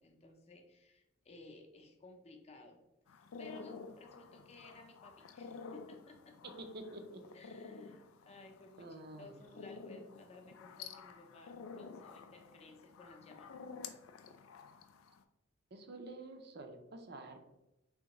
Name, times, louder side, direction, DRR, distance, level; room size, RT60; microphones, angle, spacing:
voice 1, 0.0-2.8 3.1-6.4 7.3-13.6, left 2 dB, 30° left, 3 dB, 0.5 m, -57 dB
sound 1, 3.1-15.2, left 5 dB, 90° left, 0.4 m, -51 dB
voice 2, 6.4-7.2 8.8-9.6 15.7-17.5, right 2 dB, 50° right, 6 dB, 0.5 m, -49 dB
3.6 x 3.3 x 3.0 m, 0.95 s
head